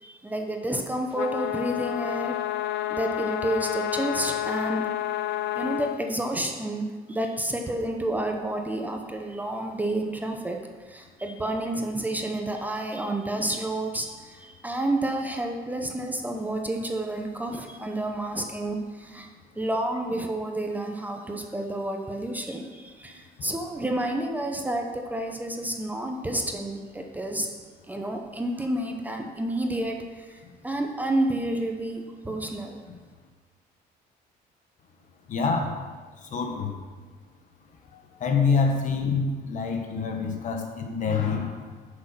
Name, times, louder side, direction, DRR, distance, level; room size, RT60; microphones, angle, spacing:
voice 1, 0.0-2.4 2.9-4.8 5.5-10.6 10.9-19.3 19.6-27.5 27.9-32.8, right 1 dB, 10° right, 3 dB, 0.8 m, -30 dB
sound 1, 1.1-6.0, left 13 dB, 85° left, 0.5 m, -29 dB
voice 2, 35.3-35.8 36.2-36.8 38.1-41.6, left 5 dB, 50° left, 3 dB, 1.4 m, -26 dB
9.9 x 6.6 x 5.8 m, 1.4 s
cardioid pair, 130°, 16 cm